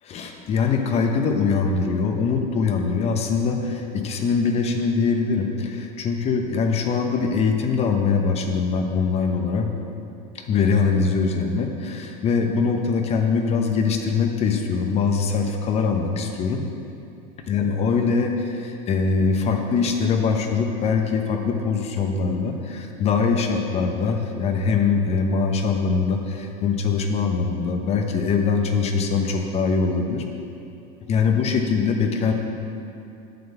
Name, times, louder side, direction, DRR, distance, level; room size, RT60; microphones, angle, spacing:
voice 1, 0.0-9.7 10.3-16.6 17.5-30.2 31.1-32.3, left 5 dB, 30° left, 4 dB, 0.9 m, -22 dB
7.9 x 5.2 x 6.8 m, 2.8 s
supercardioid pair, 135°, 20 cm